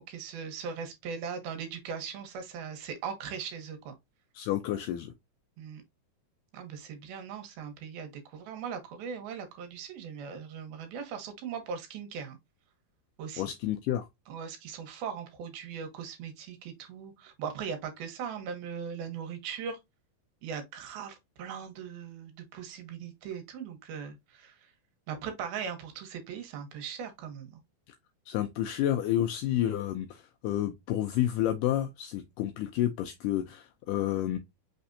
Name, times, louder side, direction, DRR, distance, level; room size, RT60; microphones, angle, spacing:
voice 1, 0.0-3.9 5.6-5.8 6.5-12.4 13.2-13.5 14.3-19.8 20.4-24.6 25.1-27.6, right 7 dB, 85° right, 3.0 m, -39 dB
voice 2, 4.4-5.1 13.4-14.1 27.9-28.0 28.3-34.4, left 12 dB, 85° left, 1.8 m, -30 dB
5.8 x 3.4 x 2.6 m
omnidirectional pair, 4.2 m